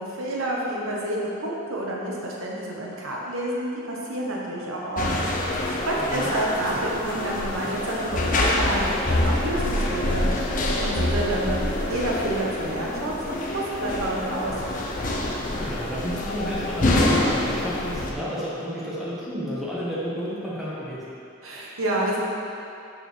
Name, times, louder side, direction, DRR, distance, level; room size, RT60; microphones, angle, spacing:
voice 1, 0.0-5.1 5.9-10.3 10.8-14.5 21.4-22.2, right 1 dB, 85° right, -3 dB, 1.0 m, -29 dB
sound 1, 5.0-18.1, left 1 dB, 40° left, 0.6 m, -26 dB
voice 2, 6.0-6.3 15.6-21.0, equal, ahead, -9 dB, 1.2 m, -31 dB
6.5 x 6.0 x 3.2 m, 2.6 s
head